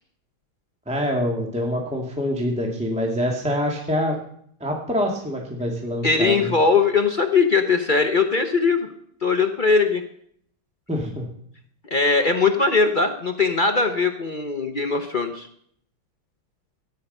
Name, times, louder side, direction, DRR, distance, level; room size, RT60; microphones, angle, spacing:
voice 1, 0.8-4.1 4.6-6.4 10.9-11.2, equal, 5° right, 1 dB, 1.7 m, -25 dB
voice 2, 6.0-8.9 9.2-10.0 11.8-15.5, left 4 dB, 55° left, 5 dB, 0.5 m, -20 dB
14.5 x 9.5 x 5.4 m, 0.65 s
omnidirectional pair, 2.3 m